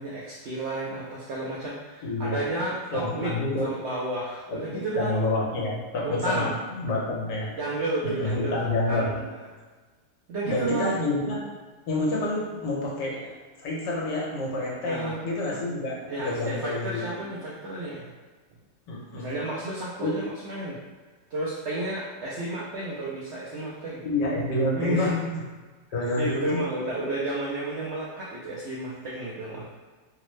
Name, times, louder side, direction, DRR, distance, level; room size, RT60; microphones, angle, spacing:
voice 1, 0.0-3.3 3.6-5.2 6.0-6.5 7.6-9.2 10.3-11.0 14.8-15.2 16.1-18.1 19.1-20.8 21.3-24.0 24.8-25.2 26.2-29.6, right 2 dB, 75° right, -6 dB, 0.6 m, -31 dB
voice 2, 2.0-2.4 2.9-3.7 4.5-7.6 8.0-9.1 10.4-11.4 11.9-17.2 18.9-19.3 20.0-20.2 24.0-25.4 25.9-26.6, left 2 dB, 90° left, -4 dB, 1.4 m, -28 dB
3.4 x 2.0 x 3.1 m, 1.3 s
omnidirectional pair, 1.8 m